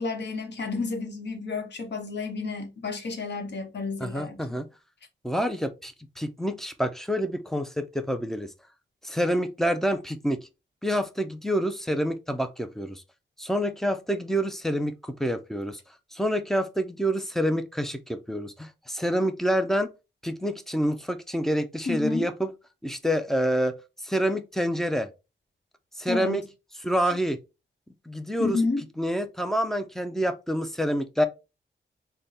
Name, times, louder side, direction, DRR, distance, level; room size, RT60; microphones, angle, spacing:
voice 1, 0.0-4.4 21.9-22.3 26.1-26.4 28.4-28.8, left 4 dB, 60° left, 1.0 m, -30 dB
voice 2, 4.0-4.7 5.2-8.5 9.0-10.4 10.8-13.0 13.4-15.8 16.1-19.9 20.2-22.5 22.8-23.7 24.0-25.1 26.0-26.4 26.8-27.4 28.1-28.6 29.0-31.3, equal, ahead, 0.5 m, -27 dB
3.9 x 2.2 x 3.3 m
wide cardioid pair, 105°, 20 cm